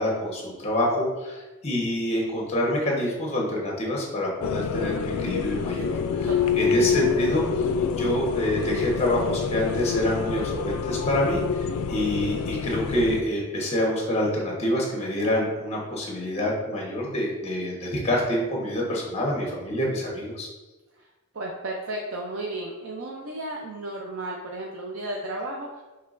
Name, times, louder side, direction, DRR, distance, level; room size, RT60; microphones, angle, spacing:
voice 1, 0.0-6.3 6.5-7.4 8.0-11.4 11.9-20.5, left 1 dB, 30° left, -2 dB, 1.1 m, -26 dB
sound 1, 4.4-13.2, left 6 dB, 85° left, 0.3 m, -27 dB
voice 2, 6.3-6.9 21.0-21.1 21.3-25.8, right 1 dB, 60° right, -1 dB, 0.5 m, -34 dB
5.6 x 3.1 x 2.5 m, 1.2 s
head